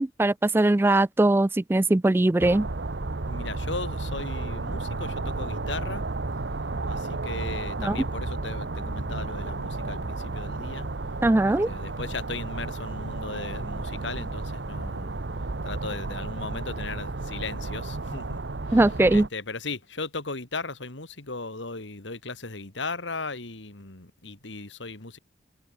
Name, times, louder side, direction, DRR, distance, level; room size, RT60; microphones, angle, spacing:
voice 1, 0.0-2.7 7.8-8.0 11.2-11.7 18.7-19.3, right 2 dB, 10° right, 0.3 m, -21 dB
sound 1, 2.4-19.3, right 3 dB, 70° right, 1.0 m, -32 dB
voice 2, 3.2-6.0 6.8-10.9 11.5-15.1 15.6-18.4 18.7-18.8 19.1-25.2, left 3 dB, 80° left, 2.8 m, -37 dB
head